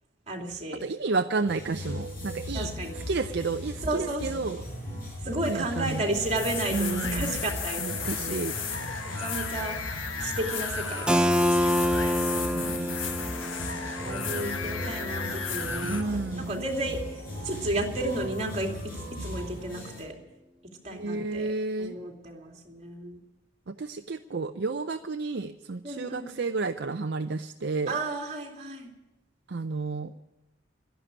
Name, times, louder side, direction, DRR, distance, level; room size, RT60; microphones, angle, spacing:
voice 1, 0.3-0.8 2.5-2.9 3.8-4.3 5.2-8.4 9.2-9.8 10.2-11.7 12.2-13.0 13.3-13.6 14.0-18.7 19.2-20.1 20.8-21.5 21.8-23.2 25.8-26.4 27.9-28.9, right 1 dB, 35° right, 1 dB, 2.7 m, -33 dB
voice 2, 0.8-2.7 2.9-4.6 5.4-6.1 6.7-7.4 7.8-8.6 12.4-12.8 15.8-16.6 20.9-22.0 23.7-28.0 29.5-30.1, right 3 dB, 55° right, 7 dB, 0.5 m, -31 dB
sound 1, 1.5-20.0, equal, 50° left, 5.5 m, -38 dB
sound 2, 6.1-16.0, left 6 dB, 85° left, 1.4 m, -35 dB
Keyboard (musical), 11.1-16.6, equal, 5° right, 0.5 m, -28 dB
12.5 x 11.0 x 9.9 m, 1.0 s
head